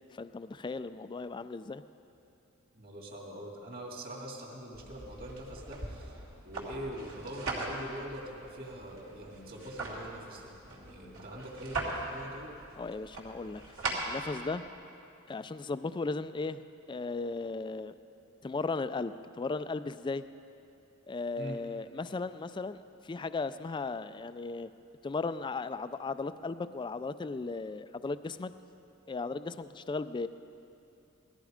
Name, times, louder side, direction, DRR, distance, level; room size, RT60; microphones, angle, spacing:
voice 1, 0.1-1.8 12.8-13.6 14.1-14.6 15.3-16.6 16.9-17.9 18.4-20.2 21.1-24.7 25.0-28.5 29.1-30.3, left 3 dB, 20° left, 12 dB, 0.3 m, -36 dB
voice 2, 2.7-6.2 6.4-12.5 21.4-21.6, equal, 45° right, -1 dB, 2.4 m, -43 dB
sound 1, 4.7-14.7, right 2 dB, 70° right, 3.1 m, -40 dB
18.0 x 14.0 x 5.1 m, 2.7 s
head